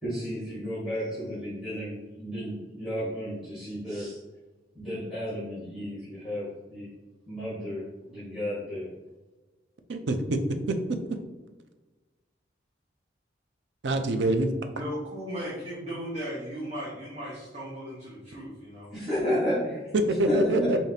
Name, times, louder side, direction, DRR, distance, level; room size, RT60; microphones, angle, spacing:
voice 1, 0.0-4.2 4.7-6.9 7.3-8.9 18.9-20.8, equal, 5° right, -10 dB, 1.3 m, -32 dB
voice 2, 9.9-10.4 13.8-14.5 19.9-20.8, right 2 dB, 70° right, 7 dB, 0.5 m, -25 dB
voice 3, 14.7-18.9 20.7-20.8, equal, 35° right, -7 dB, 1.0 m, -36 dB
5.0 x 2.8 x 2.7 m, 1.2 s
head